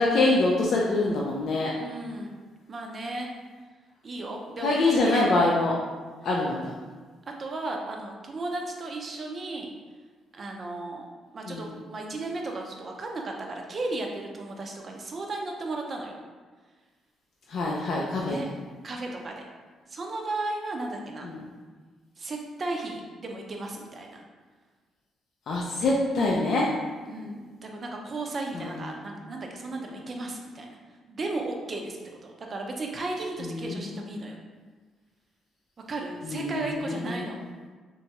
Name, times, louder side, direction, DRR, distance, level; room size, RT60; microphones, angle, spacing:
voice 1, 0.0-1.7 4.6-5.8 6.2-6.8 11.5-11.7 17.5-18.4 21.2-21.4 25.5-26.7 28.5-29.0 33.4-34.2 36.2-37.3, left 2 dB, 70° left, -3 dB, 0.3 m, -25 dB
voice 2, 1.8-2.4 2.7-3.3 4.0-5.3 7.4-9.7 10.3-11.0 11.3-16.1 18.3-18.5 18.8-19.4 19.9-21.3 22.2-24.2 27.0-30.8 31.1-34.4 35.9-37.4, right 2 dB, 40° right, 1 dB, 0.4 m, -35 dB
2.9 x 2.2 x 2.8 m, 1.4 s
cardioid pair, 90°, 0 cm